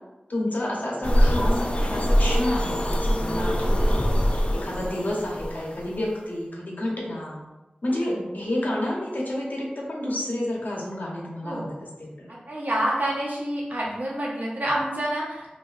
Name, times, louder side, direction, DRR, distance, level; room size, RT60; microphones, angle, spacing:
voice 1, 0.3-7.4 7.8-12.3, left 1 dB, 70° left, -4 dB, 0.8 m, -30 dB
sound 1, 1.0-6.1, equal, 40° left, 0.3 m, -23 dB
voice 2, 12.3-15.5, right 1 dB, 60° right, -5 dB, 0.9 m, -28 dB
3.3 x 2.5 x 2.4 m, 1.1 s
wide cardioid pair, 65°, 3 cm